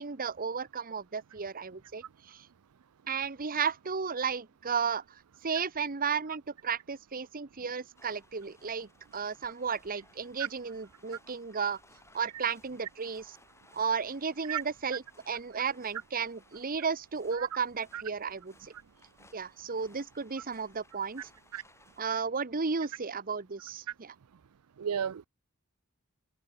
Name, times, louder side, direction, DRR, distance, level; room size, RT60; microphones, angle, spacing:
voice 1, 0.0-2.5 3.1-11.8 12.1-13.4 13.7-18.7 19.3-21.3 22.0-24.1, right 6 dB, 40° right, 1.0 m, -34 dB
sound 1, 7.9-22.0, left 2 dB, 15° left, 6.4 m, -62 dB
voice 2, 24.8-25.3, right 8 dB, 75° right, 0.5 m, -32 dB
head